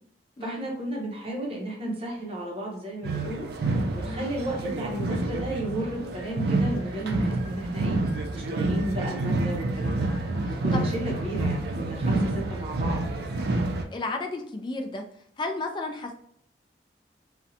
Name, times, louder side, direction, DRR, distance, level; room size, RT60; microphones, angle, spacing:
voice 1, 0.4-3.5 3.9-8.0 8.3-10.1 10.6-13.2, right 1 dB, 30° right, -1 dB, 0.7 m, -33 dB
sound 1, 3.0-13.8, right 2 dB, 60° right, 0.3 m, -28 dB
voice 2, 13.9-15.0 15.4-16.1, left 2 dB, 25° left, 4 dB, 0.3 m, -33 dB
2.6 x 2.1 x 2.7 m, 0.67 s
head